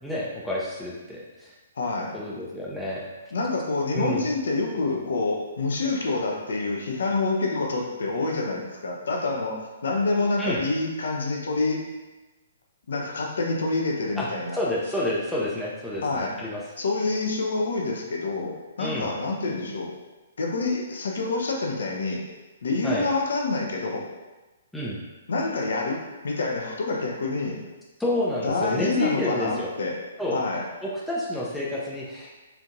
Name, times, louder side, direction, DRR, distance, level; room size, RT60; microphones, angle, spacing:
voice 1, 0.0-1.5 2.1-3.0 3.9-4.2 10.4-10.6 14.2-14.3 14.5-16.6 18.8-19.1 22.8-23.1 24.7-25.0 28.0-29.7 30.2-30.4 30.8-32.3, left 1 dB, 5° left, -6 dB, 0.5 m, -29 dB
voice 2, 1.8-2.2 3.3-11.9 12.9-14.6 16.0-16.4 16.8-19.9 20.4-22.3 22.6-24.1 25.3-27.6 28.4-30.0 30.3-30.7, left 3 dB, 65° left, 1 dB, 0.6 m, -27 dB
4.4 x 2.6 x 2.5 m, 1.1 s
figure-of-eight pair, 125°, 0 cm